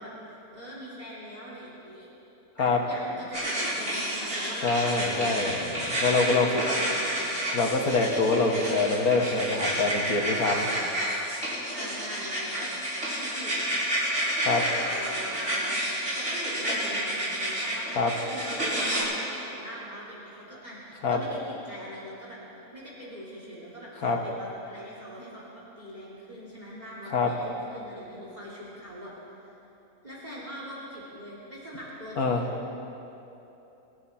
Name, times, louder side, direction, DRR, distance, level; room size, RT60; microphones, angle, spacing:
voice 1, 0.0-2.1 2.6-7.3 10.1-10.8 11.7-12.7 13.1-13.8 14.4-22.4 22.7-29.1 30.0-32.5, equal, 30° right, -6 dB, 3.2 m, -42 dB
sound 1, 3.3-19.0, right 1 dB, 60° right, 5.1 m, -30 dB
voice 2, 4.6-6.6 7.5-10.6 14.5-14.6 18.0-18.1 21.0-21.2 24.0-24.2 27.1-27.3 32.2-32.4, left 3 dB, 85° left, 3 dB, 2.0 m, -25 dB
26.0 x 13.0 x 4.3 m, 3.0 s
omnidirectional pair, 1.5 m